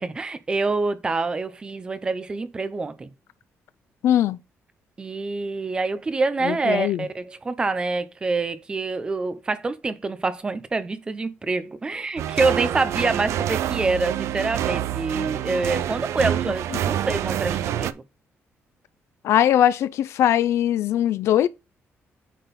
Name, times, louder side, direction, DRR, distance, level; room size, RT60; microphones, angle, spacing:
voice 1, 0.0-3.1 5.0-18.0, right 3 dB, 20° right, 0.6 m, -26 dB
voice 2, 4.0-4.4 6.4-7.0 19.2-21.5, left 11 dB, 75° left, 0.5 m, -20 dB
sound 1, 12.2-17.9, right 11 dB, 80° right, 0.4 m, -27 dB
9.1 x 3.8 x 4.2 m
cardioid pair, 175°, 5 cm